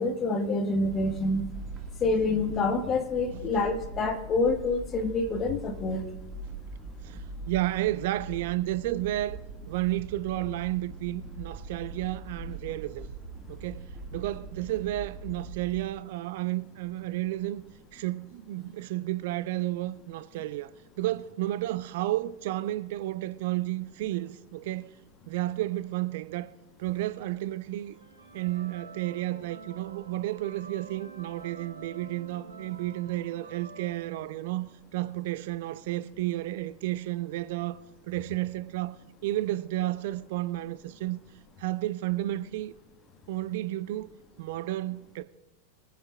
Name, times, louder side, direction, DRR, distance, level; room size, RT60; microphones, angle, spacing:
voice 1, 0.0-1.5 2.0-6.0, left 3 dB, 25° left, 1.4 m, -27 dB
sound 1, 0.8-15.9, right 3 dB, 25° right, 1.7 m, -42 dB
voice 2, 7.0-9.4 9.7-13.1 13.5-17.6 17.9-20.7 21.0-24.9 25.3-26.5 26.8-28.0 28.3-37.8 38.1-41.2 41.6-42.7 43.3-44.1 44.4-45.2, right 15 dB, 50° right, 0.4 m, -32 dB
sound 2, 27.8-34.8, right 5 dB, 70° right, 3.7 m, -48 dB
22.0 x 10.0 x 2.3 m
figure-of-eight pair, 90°, 0 cm